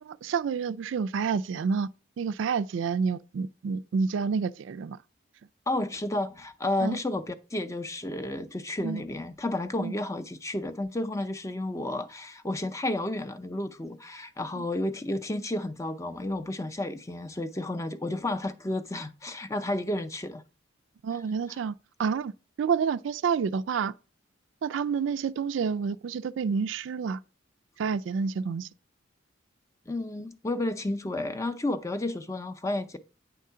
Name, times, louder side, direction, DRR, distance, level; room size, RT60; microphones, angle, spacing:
voice 1, 0.0-1.9 2.2-5.0 6.8-7.0 8.8-9.0 9.8-9.9 14.6-14.7 21.0-21.7 22.0-23.9 24.6-27.2 27.8-28.7, right 6 dB, 70° right, 0.3 m, -29 dB
voice 2, 5.7-20.4 21.5-21.6 29.9-33.0, left 1 dB, 15° left, 0.5 m, -32 dB
9.0 x 3.7 x 5.6 m
head